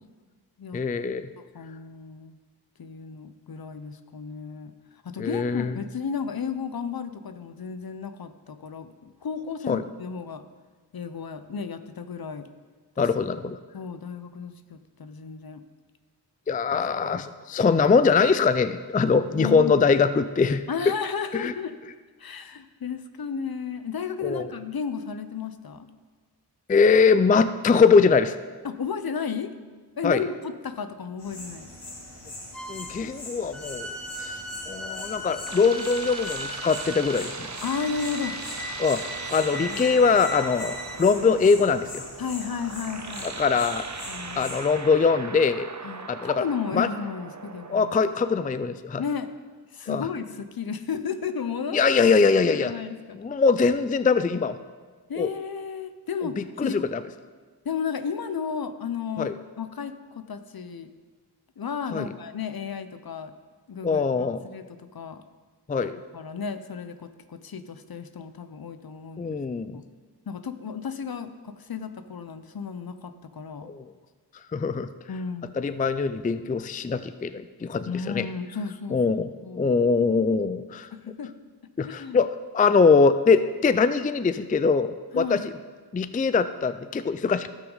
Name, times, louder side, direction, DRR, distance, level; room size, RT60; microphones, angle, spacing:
voice 1, 0.7-1.3 5.2-5.7 9.7-9.8 13.0-13.6 16.5-20.6 21.3-21.5 24.2-24.5 26.7-28.3 30.0-30.2 32.7-33.9 34.2-34.4 34.7-37.5 38.8-39.0 39.3-42.0 43.2-43.9 44.4-45.7 46.1-46.4 46.7-46.9 47.7-49.0 49.9-50.1 51.7-52.7 53.2-54.6 55.2-55.3 56.4-57.0 59.2-59.3 61.9-62.1 63.8-64.4 65.7-66.0 69.2-69.8 73.6-73.8 74.5-74.9 75.6-78.3 78.9-79.3 79.6-80.9 81.8-85.5 85.9-87.5, left 5 dB, 20° left, 13 dB, 0.4 m, -22 dB
voice 2, 1.4-2.4 2.8-4.7 5.0-10.4 10.9-12.5 13.0-13.1 13.7-15.6 17.2-17.3 19.3-19.8 20.7-21.8 22.2-25.9 28.6-29.5 30.0-31.7 37.6-38.4 39.6-40.0 42.2-43.3 44.1-44.6 45.8-47.9 49.0-49.3 49.7-51.8 52.4-53.2 55.1-56.8 57.6-60.9 61.6-63.3 63.7-65.2 66.1-69.4 69.7-69.8 70.3-73.7 75.1-75.6 77.9-79.0 79.4-79.8 80.9-81.3 81.8-82.2 85.1-85.5, left 6 dB, 60° left, 10 dB, 0.7 m, -33 dB
sound 1, 31.2-44.6, left 1 dB, 85° left, 2.8 m, -42 dB
sound 2, 32.5-33.0 33.5-41.1, equal, ahead, 1.0 m, -38 dB
sound 3, 35.0-48.6, right 4 dB, 45° right, 0.8 m, -39 dB
16.5 x 6.0 x 4.0 m, 1.4 s
wide cardioid pair, 50°, 41 cm